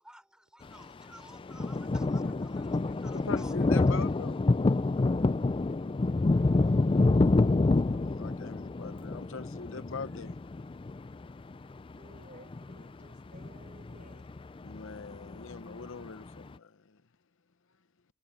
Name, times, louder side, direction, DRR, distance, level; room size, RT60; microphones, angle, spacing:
voice 1, 0.0-3.6 3.9-4.1, right 1 dB, 5° right, 4.7 m, -55 dB
sound 1, 1.0-1.1 1.3-12.9 13.1-16.3, left 3 dB, 25° left, 0.4 m, -27 dB
voice 2, 3.1-4.4 7.9-10.4 14.6-17.0, left 4 dB, 60° left, 0.8 m, -42 dB
voice 3, 6.4-7.9 11.9-14.4, right 2 dB, 40° right, 3.8 m, -57 dB
head